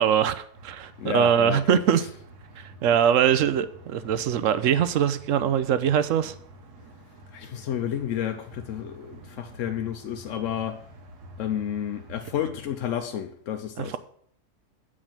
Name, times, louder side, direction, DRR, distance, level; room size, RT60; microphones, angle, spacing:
voice 1, 0.0-2.0 2.6-6.3 13.8-14.0, right 9 dB, 65° right, 0.9 m, -22 dB
sound 1, 0.5-13.0, right 1 dB, 90° right, 1.8 m, -48 dB
voice 2, 1.0-2.1 7.3-10.8 11.4-14.0, left 9 dB, 65° left, 0.9 m, -31 dB
8.4 x 5.0 x 7.3 m
omnidirectional pair, 1.6 m